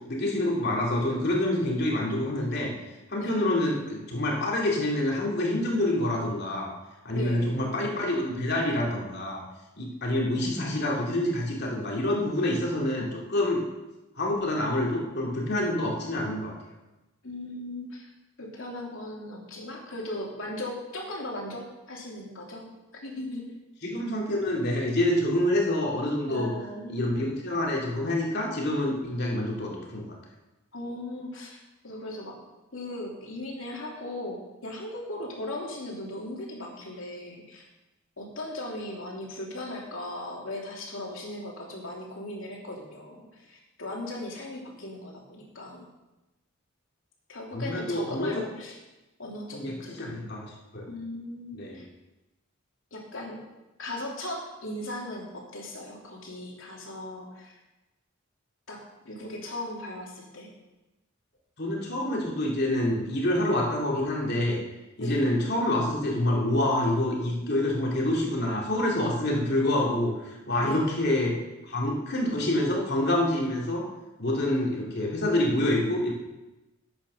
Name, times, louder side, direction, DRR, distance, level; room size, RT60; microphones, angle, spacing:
voice 1, 0.1-2.7 3.1-6.7 7.0-9.4 9.8-13.6 14.2-16.5 23.8-26.5 26.9-30.0 47.5-48.4 49.5-50.9 51.5-51.8 61.6-64.6 65.0-70.1 70.5-71.3 71.7-73.8 74.2-76.1, left 1 dB, 55° left, -2 dB, 2.9 m, -27 dB
voice 2, 7.1-7.6 17.2-18.1 18.4-22.6 22.9-23.5 26.3-27.1 30.7-31.6 31.8-32.4 32.7-37.7 38.2-45.9 47.3-48.8 49.2-50.3 50.9-51.9 52.9-53.4 53.8-57.6 58.7-60.5 65.0-65.3 70.6-70.8, left 1 dB, 70° left, -2 dB, 3.1 m, -38 dB
10.5 x 8.4 x 6.4 m, 1.0 s
head